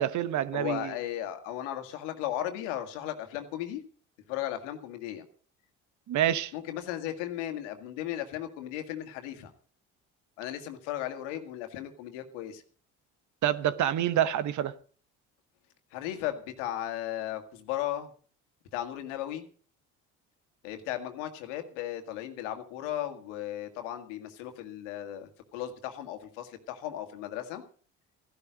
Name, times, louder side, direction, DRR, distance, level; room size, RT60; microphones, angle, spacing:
voice 1, 0.0-0.9 6.1-6.5 13.4-14.7, right 11 dB, 55° right, 1.1 m, -27 dB
voice 2, 0.5-3.8 4.3-5.3 6.5-9.5 10.4-12.6 15.9-18.1 18.7-19.4 20.6-27.6, left 12 dB, 80° left, 2.0 m, -36 dB
15.0 x 11.5 x 5.1 m
hypercardioid pair, 65°, 35 cm